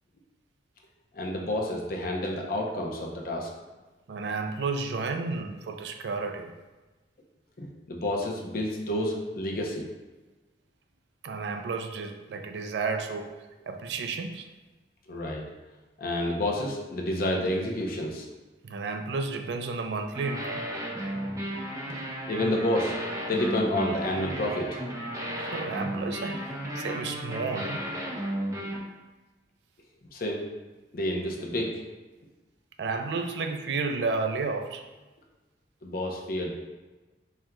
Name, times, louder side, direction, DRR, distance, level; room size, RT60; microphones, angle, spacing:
voice 1, 1.1-3.5 7.6-9.9 15.1-15.4 16.0-18.3 22.3-22.9 23.3-24.8 30.1-30.4 30.9-31.8 35.8-36.5, left 1 dB, 55° left, 0 dB, 0.7 m, -29 dB
voice 2, 4.1-6.5 11.2-13.3 13.7-14.5 18.6-20.6 25.4-26.4 26.7-27.8 32.8-34.9, right 4 dB, 75° right, 6 dB, 0.4 m, -32 dB
sound 1, 20.1-28.8, equal, 20° right, 0.5 m, -34 dB
4.3 x 3.6 x 2.2 m, 1.2 s
head